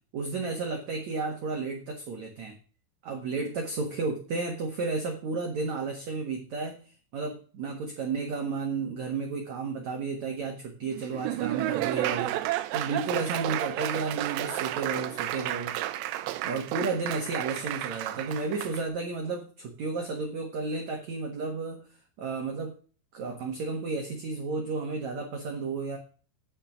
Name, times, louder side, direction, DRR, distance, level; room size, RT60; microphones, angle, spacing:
voice 1, 0.1-2.5 3.0-6.8 7.1-15.8 16.4-21.9 22.2-22.8 23.1-26.0, right 4 dB, 60° right, 1 dB, 2.0 m, -32 dB
Laughter / Applause, 11.0-18.8, right 14 dB, 80° right, 2.6 m, -32 dB
10.5 x 6.6 x 5.1 m, 0.39 s
omnidirectional pair, 5.5 m